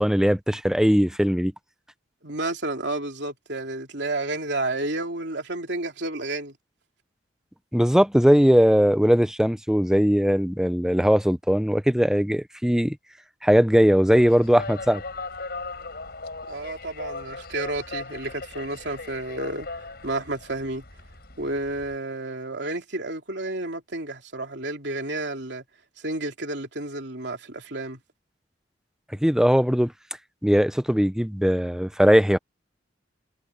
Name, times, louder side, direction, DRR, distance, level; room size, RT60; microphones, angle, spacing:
voice 1, 0.0-1.5 7.7-13.0 13.4-15.0 29.2-29.9 30.4-32.4, equal, 5° right, 0.5 m, -19 dB
voice 2, 2.2-6.5 16.5-19.7 20.0-20.8 21.4-25.6 26.0-28.0, right 2 dB, 65° right, 3.6 m, -31 dB
sound 1, 14.1-22.0, left 3 dB, 55° left, 6.0 m, -38 dB
head